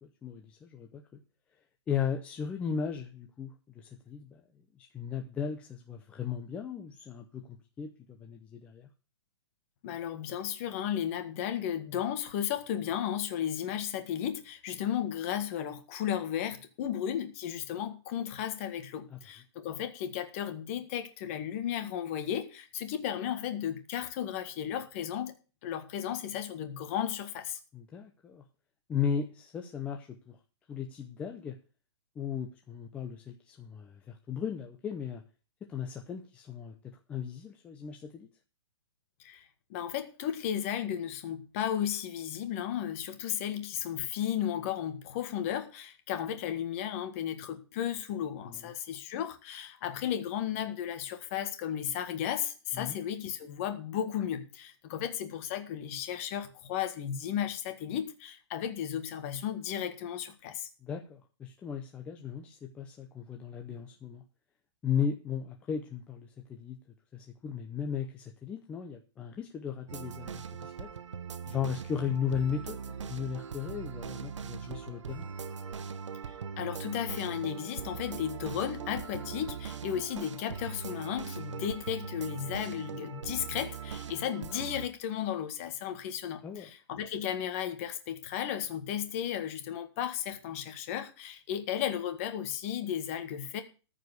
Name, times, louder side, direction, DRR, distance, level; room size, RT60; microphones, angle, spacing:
voice 1, 0.0-1.2 1.9-4.4 4.7-8.9 19.1-19.2 27.7-28.4 28.9-30.4 30.7-31.6 32.2-35.2 35.7-36.8 37.1-38.3 48.4-48.7 52.7-53.0 60.8-64.2 64.8-66.8 67.1-70.9 71.5-72.8 73.0-75.3 79.9-80.0 86.4-86.7, left 7 dB, 10° left, 0.6 m, -36 dB
voice 2, 9.8-25.3 25.6-27.6 39.2-60.7 76.6-93.6, left 10 dB, 30° left, 1.7 m, -34 dB
sound 1, 69.9-84.9, right 6 dB, 85° right, 1.1 m, -40 dB
14.5 x 5.0 x 7.9 m
hypercardioid pair, 170°, 15 cm